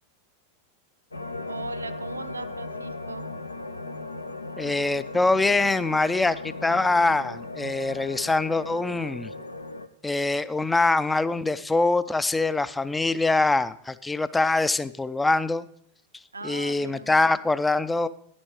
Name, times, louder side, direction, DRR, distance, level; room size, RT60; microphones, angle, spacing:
sound 1, 1.1-9.9, left 2 dB, 80° left, 0.5 m, -37 dB
voice 1, 1.5-3.3 16.3-17.3, right 3 dB, 80° right, 10 dB, 0.6 m, -38 dB
voice 2, 4.6-9.3 10.0-15.7 16.4-18.1, left 3 dB, 10° left, 16 dB, 0.4 m, -24 dB
11.0 x 10.0 x 3.2 m, 0.65 s
figure-of-eight pair, 90°, 0 cm